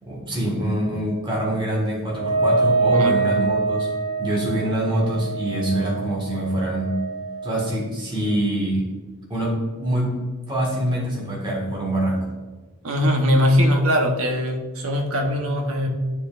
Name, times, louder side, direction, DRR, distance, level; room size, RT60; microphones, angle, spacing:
voice 1, 0.0-3.9 4.2-7.0 7.4-8.9 9.3-10.2 10.5-12.3, right 1 dB, 20° right, -4 dB, 1.6 m, -25 dB
Wind instrument woodwind instrument, 2.1-7.8, right 3 dB, 40° right, 1.6 m, -25 dB
voice 2, 12.8-15.9, equal, 65° right, 2 dB, 1.0 m, -21 dB
9.9 x 4.7 x 2.5 m, 1.3 s
head